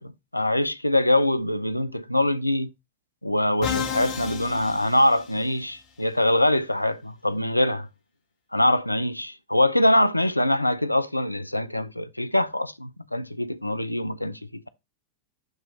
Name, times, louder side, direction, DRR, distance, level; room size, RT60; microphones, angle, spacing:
voice 1, 0.0-2.7 3.2-7.9 8.5-14.7, left 1 dB, 85° left, 0.4 m, -23 dB
Musical instrument, 3.6-5.7, left 7 dB, 40° left, 1.4 m, -31 dB
7.4 x 3.0 x 4.9 m
figure-of-eight pair, 90°, 0 cm